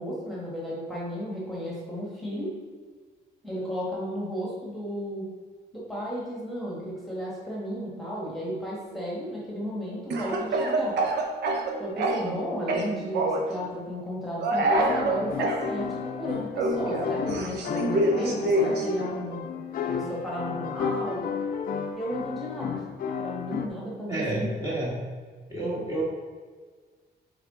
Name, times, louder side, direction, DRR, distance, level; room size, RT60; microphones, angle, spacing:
voice 1, 0.0-2.6 3.4-5.3 5.7-11.0 11.8-19.4 19.8-21.3 21.9-22.8 23.2-24.8, equal, ahead, -6 dB, 1.5 m, -34 dB
Speech / Cough, 10.1-12.4 12.7-13.5 14.4-15.6 16.5-18.9, right 2 dB, 80° right, 0.9 m, -26 dB
sound 1, 14.6-23.7, left 6 dB, 55° left, 0.5 m, -32 dB
voice 2, 24.1-24.9 25.5-26.0, right 1 dB, 20° right, -7 dB, 1.5 m, -29 dB
8.2 x 3.5 x 3.8 m, 1.5 s
cardioid pair, 155°, 17 cm